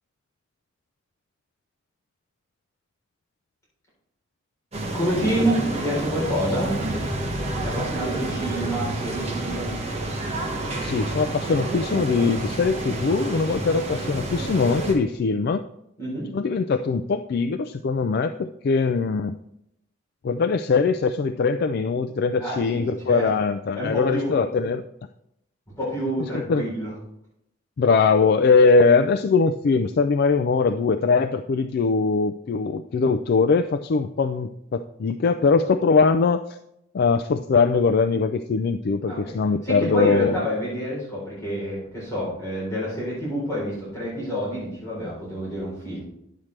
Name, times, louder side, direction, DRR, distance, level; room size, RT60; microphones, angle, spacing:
sound 1, 4.7-14.9, right 1 dB, 30° right, 1.3 m, -29 dB
voice 1, 4.9-6.8 7.6-9.7 16.0-16.3 22.4-23.3 23.8-24.4 25.8-26.9 39.1-39.3 39.6-46.0, equal, 15° left, -7 dB, 3.7 m, -28 dB
voice 2, 10.8-15.6 16.3-19.4 20.2-24.8 26.3-26.6 27.8-36.6 36.9-40.4, left 4 dB, 50° left, 8 dB, 0.3 m, -21 dB
10.5 x 7.3 x 3.2 m, 0.79 s
head